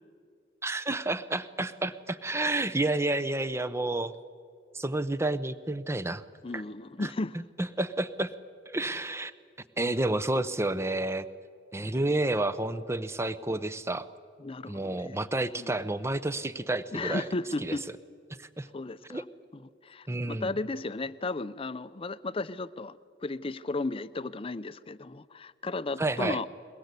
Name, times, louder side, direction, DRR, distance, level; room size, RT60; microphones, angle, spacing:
voice 1, 0.6-4.1 4.7-6.2 6.5-6.6 7.0-7.1 7.3-8.3 8.7-9.3 9.8-11.3 11.7-14.1 14.7-17.3 17.6-17.7 18.4-18.7 19.1-19.2 20.1-20.5 26.0-26.4, right 2 dB, 15° right, 14 dB, 0.7 m, -30 dB
voice 2, 6.4-7.4 14.4-15.2 15.6-15.8 16.9-17.8 18.7-19.2 19.5-26.5, left 2 dB, 30° left, 15 dB, 0.6 m, -35 dB
22.5 x 20.5 x 8.3 m, 2.2 s
head